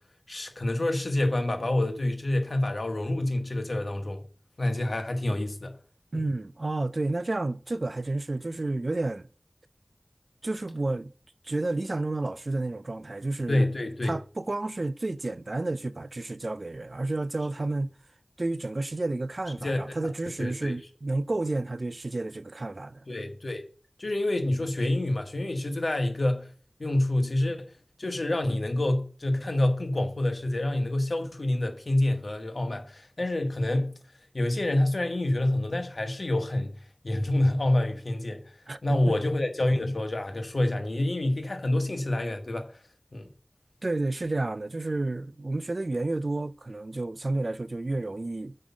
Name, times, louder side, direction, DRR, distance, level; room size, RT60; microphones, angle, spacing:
voice 1, 0.3-4.2 4.6-5.8 6.1-6.2 13.5-14.1 19.6-19.8 20.4-20.7 23.1-23.6 24.0-26.5 26.8-27.7 28.0-34.0 34.3-36.7 37.0-38.4 38.8-42.7 43.1-43.3, left 1 dB, 75° left, 1.5 m, -27 dB
voice 2, 6.1-9.3 10.4-11.1 11.4-13.7 14.0-17.9 18.4-23.0 38.7-39.2 43.8-48.5, right 2 dB, 65° right, 0.4 m, -31 dB
6.4 x 5.5 x 7.2 m
wide cardioid pair, 50°, 0 cm